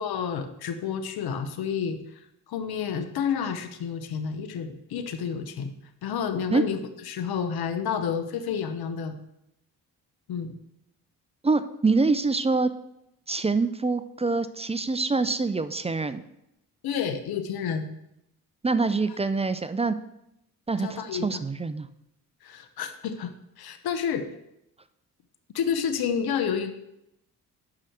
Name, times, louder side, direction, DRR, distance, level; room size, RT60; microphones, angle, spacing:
voice 1, 0.0-2.2 2.5-5.7 6.0-6.8 7.1-9.2 10.3-10.5 16.8-17.9 20.8-21.4 22.4-24.3 25.5-26.7, left 7 dB, 65° left, 9 dB, 0.9 m, -30 dB
voice 2, 11.4-12.7 13.3-16.2 18.6-19.9 20.7-21.9, right 3 dB, 15° right, 12 dB, 0.4 m, -25 dB
5.7 x 4.8 x 6.5 m, 0.83 s
supercardioid pair, 55°, 39 cm